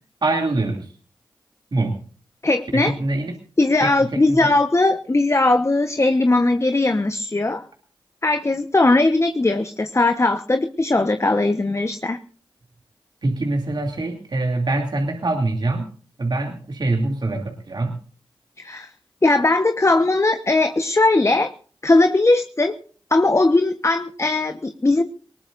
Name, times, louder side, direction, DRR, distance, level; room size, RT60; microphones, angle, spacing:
voice 1, 0.2-0.9 1.7-2.0 2.7-3.3 3.8-4.5 13.2-15.9 16.2-18.0, right 2 dB, 55° right, 3 dB, 2.8 m, -24 dB
voice 2, 2.4-2.9 3.6-7.6 8.2-12.2 18.6-18.9 19.2-21.5 21.8-22.7 23.1-25.0, left 2 dB, 30° left, 8 dB, 1.2 m, -19 dB
20.0 x 18.5 x 2.6 m, 0.42 s
cardioid pair, 40°, 9 cm